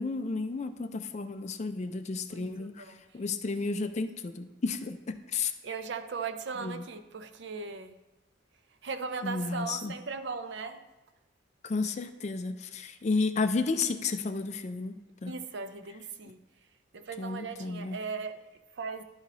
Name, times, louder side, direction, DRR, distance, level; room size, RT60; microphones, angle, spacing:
voice 1, 0.0-5.5 6.6-6.8 9.2-9.9 11.6-15.3 17.2-18.0, left 4 dB, 35° left, 9 dB, 0.4 m, -32 dB
voice 2, 2.3-3.0 5.6-8.0 8.8-10.8 15.3-16.4 16.9-18.4 18.7-19.0, right 5 dB, 60° right, 10 dB, 0.5 m, -38 dB
11.5 x 4.0 x 4.1 m, 1.1 s
head